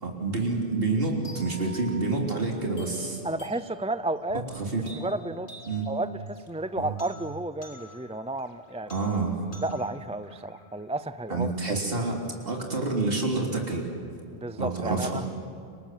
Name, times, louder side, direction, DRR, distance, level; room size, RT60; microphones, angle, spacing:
voice 1, 0.0-3.2 4.6-4.8 5.7-5.9 6.8-6.9 8.9-9.4 11.3-13.9 14.6-15.2, right 3 dB, 65° right, 0 dB, 3.6 m, -28 dB
sound 1, 1.2-11.3, equal, 55° left, 3.7 m, -49 dB
voice 2, 3.2-4.4 4.9-5.5 5.9-8.9 9.6-11.8 14.3-15.3, right 2 dB, 10° right, 13 dB, 0.5 m, -32 dB
30.0 x 25.5 x 7.6 m, 2.5 s
omnidirectional pair, 1.0 m